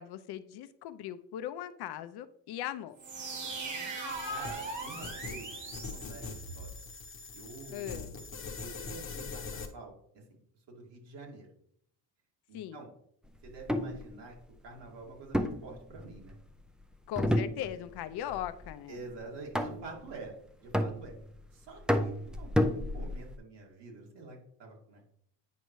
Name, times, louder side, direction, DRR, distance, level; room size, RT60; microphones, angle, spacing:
voice 1, 0.0-3.0 7.7-8.1 12.5-12.8 17.1-19.1, left 11 dB, 65° left, 11 dB, 0.6 m, -39 dB
sound 1, 3.0-6.8, right 3 dB, 45° right, 1.5 m, -40 dB
sound 2, 4.1-9.7, left 4 dB, 30° left, 1.0 m, -42 dB
voice 2, 4.3-5.5 5.9-6.2 6.5-6.7 7.3-8.0 8.6-10.2 10.7-11.5 12.5-12.9 13.4-14.4 14.6-16.4 18.9-20.3 20.6-21.2 21.5-25.1, right 3 dB, 75° right, -1 dB, 2.4 m, -47 dB
sound 3, 13.5-14.0 15.3-16.4 17.2-18.0 18.3-18.7 19.5-20.0 20.7-21.4 21.9-23.3, equal, ahead, 0.3 m, -30 dB
9.3 x 5.4 x 3.1 m, 0.69 s
cardioid pair, 130°, 42 cm